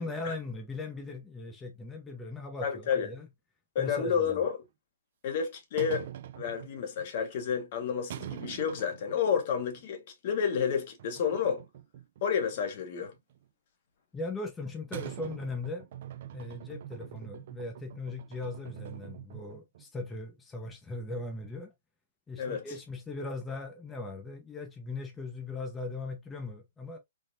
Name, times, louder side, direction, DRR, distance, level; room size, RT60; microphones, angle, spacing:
voice 1, 0.0-3.3 3.8-4.4 14.1-15.9 16.3-21.7 22.3-27.0, left 2 dB, 15° left, 0.5 m, -39 dB
voice 2, 2.6-3.1 3.7-4.6 5.2-6.0 6.4-11.6 12.2-13.1 22.4-22.7, left 7 dB, 50° left, 0.9 m, -30 dB
sound 1, 4.6-4.7 5.8-7.1 8.1-9.4 9.7-9.8 11.0-12.3 12.5-13.4 14.9-19.9 20.1-20.2 20.6-20.7 21.1-21.7, right 11 dB, 55° right, 0.3 m, -44 dB
3.4 x 2.1 x 2.5 m
hypercardioid pair, 130°, 0 cm